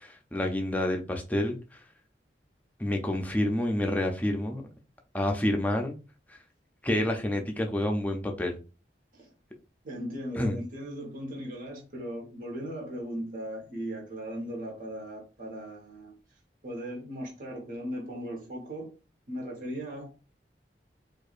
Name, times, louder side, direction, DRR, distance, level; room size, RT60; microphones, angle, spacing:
voice 1, 0.0-1.8 2.8-4.7 5.1-6.0 6.3-6.4 6.8-8.6 10.4-10.6, left 1 dB, 10° left, 0.5 m, -28 dB
voice 2, 9.8-16.1 16.6-18.9 19.3-20.2, equal, 50° right, 1.2 m, -38 dB
4.5 x 2.4 x 2.4 m
head